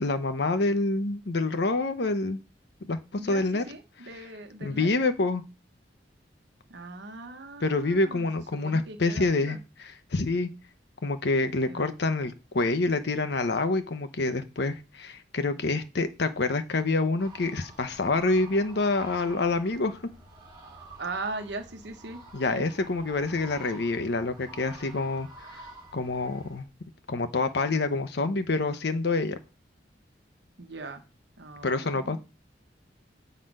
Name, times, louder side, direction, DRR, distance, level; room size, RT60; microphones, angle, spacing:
voice 1, 0.0-2.4 2.9-3.6 4.6-5.4 7.6-10.5 11.0-20.0 22.3-25.3 25.9-26.7 27.1-29.4 31.6-32.2, left 3 dB, 65° left, 9 dB, 0.8 m, -27 dB
voice 2, 3.2-4.9 6.7-8.3 8.5-9.6 11.7-11.9 21.0-22.2 22.5-22.7 30.6-31.0 31.4-32.2, right 3 dB, 70° right, 7 dB, 1.1 m, -39 dB
sound 1, 17.2-26.6, right 2 dB, 25° right, 2.4 m, -48 dB
7.6 x 4.1 x 5.3 m, 0.30 s
head